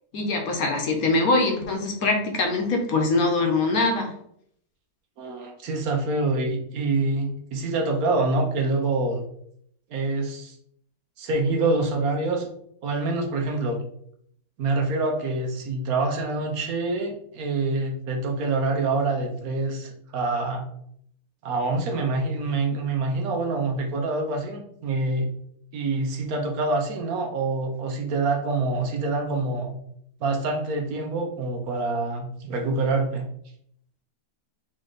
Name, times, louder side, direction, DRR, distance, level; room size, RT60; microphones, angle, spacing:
voice 1, 0.1-4.1, left 3 dB, 65° left, 3 dB, 1.2 m, -23 dB
voice 2, 5.2-9.2 9.9-10.5 11.2-12.5 12.8-13.8 14.6-20.7 21.4-25.3 25.7-29.7 30.2-33.3, right 3 dB, 65° right, 2 dB, 1.2 m, -26 dB
4.2 x 3.2 x 3.8 m, 0.68 s
omnidirectional pair, 1.7 m